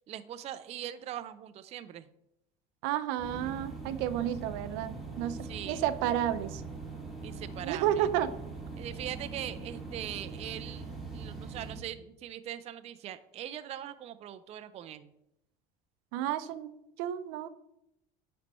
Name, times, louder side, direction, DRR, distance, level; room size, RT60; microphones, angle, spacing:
voice 1, 0.1-2.1 4.2-4.3 5.4-5.9 7.2-8.1 8.8-15.1, right 11 dB, 35° right, 11 dB, 0.4 m, -41 dB
voice 2, 2.8-5.4 5.6-6.6 7.6-8.3 16.1-16.7 17.0-17.5, right 11 dB, 80° right, 12 dB, 0.6 m, -31 dB
sound 1, 3.2-11.8, right 4 dB, ahead, 1.6 m, -42 dB
9.6 x 4.3 x 4.2 m, 0.82 s
cardioid pair, 125°, 19 cm